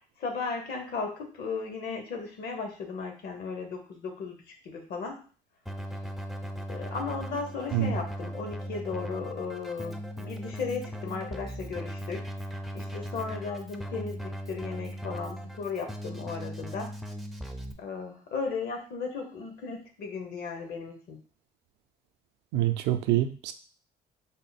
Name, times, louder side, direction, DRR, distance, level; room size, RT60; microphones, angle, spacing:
voice 1, 0.2-5.2 6.7-12.3 12.7-16.9 17.8-21.2, left 4 dB, 65° left, 3 dB, 1.0 m, -36 dB
Keyboard (musical), 5.7-17.7, equal, ahead, 0.4 m, -38 dB
voice 2, 22.5-23.5, right 12 dB, 85° right, 9 dB, 0.4 m, -26 dB
3.7 x 2.0 x 4.0 m, 0.40 s
cardioid pair, 110°, 17 cm